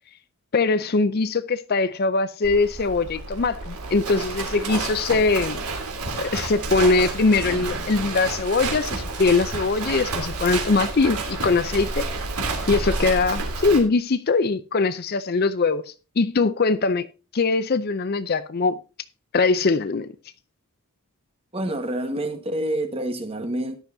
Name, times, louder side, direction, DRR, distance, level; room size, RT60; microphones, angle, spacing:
voice 1, 0.5-5.6 6.2-12.1 12.7-15.8 16.2-17.1 17.3-18.8 19.3-20.1, left 3 dB, 45° left, 0.5 m, -22 dB
Livestock farm animals working animals, 2.4-13.8, right 3 dB, 90° right, 3.0 m, -30 dB
voice 2, 21.5-23.8, right 1 dB, 25° right, 1.4 m, -27 dB
13.5 x 10.5 x 2.7 m
head